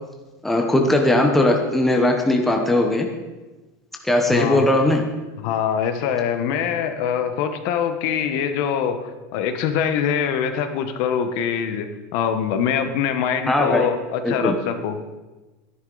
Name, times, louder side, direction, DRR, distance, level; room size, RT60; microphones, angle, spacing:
voice 1, 0.4-3.1 4.0-5.0 13.5-13.9 14.2-14.6, left 1 dB, 5° left, 2 dB, 0.9 m, -19 dB
voice 2, 4.3-4.7 5.4-15.0, left 8 dB, 50° left, 8 dB, 1.0 m, -24 dB
12.5 x 11.0 x 3.9 m, 1.2 s
supercardioid pair, 165°, 8 cm